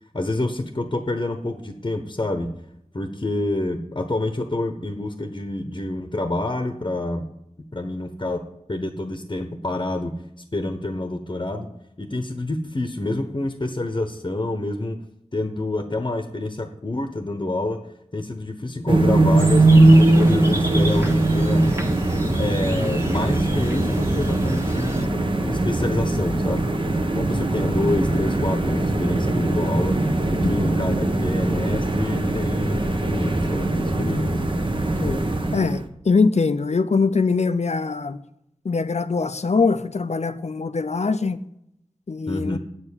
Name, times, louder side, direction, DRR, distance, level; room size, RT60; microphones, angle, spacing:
voice 1, 0.1-2.5 2.9-7.3 7.7-10.2 10.5-11.7 12.0-15.0 15.3-17.9 18.1-21.7 22.2-26.8 27.1-34.4 42.3-42.6, left 2 dB, 40° left, 1.0 m, -27 dB
sound 1, 18.9-35.9, right 2 dB, 45° right, 1.3 m, -20 dB
sound 2, 19.4-25.1, right 1 dB, 20° right, 1.6 m, -36 dB
voice 2, 35.5-38.2 38.6-41.4 42.1-42.6, left 4 dB, 65° left, 0.7 m, -22 dB
8.7 x 7.3 x 8.6 m
wide cardioid pair, 70°, 12 cm